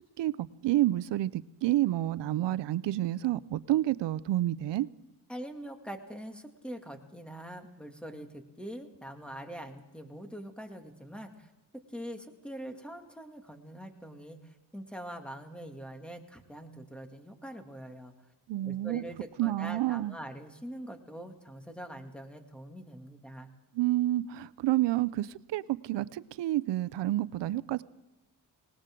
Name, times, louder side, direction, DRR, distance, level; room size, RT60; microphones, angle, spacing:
voice 1, 0.0-4.9 18.5-19.0 19.4-20.1 23.7-27.8, right 15 dB, 85° right, 0.6 m, -29 dB
voice 2, 5.3-11.5 11.9-18.1 18.6-23.5, right 1 dB, ahead, 2.1 m, -44 dB
19.5 x 19.0 x 3.7 m
cardioid pair, 85°, 41 cm